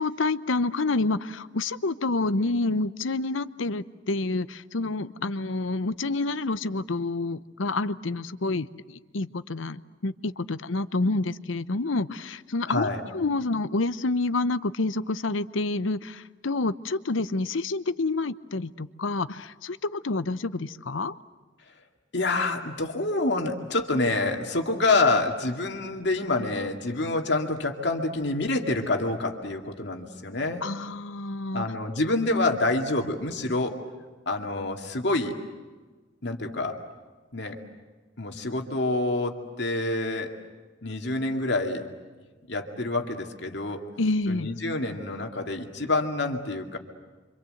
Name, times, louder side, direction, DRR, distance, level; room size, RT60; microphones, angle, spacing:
voice 1, 0.0-21.1 30.6-31.7 44.0-44.5, left 3 dB, 80° left, 14 dB, 0.8 m, -28 dB
voice 2, 12.7-13.0 22.1-30.6 31.5-33.8 34.3-35.3 36.2-36.8 37.3-37.6 38.2-40.3 40.8-41.9 42.5-43.8 44.3-46.8, left 2 dB, 60° left, 3 dB, 2.3 m, -27 dB
29.0 x 25.5 x 7.9 m, 1.3 s
head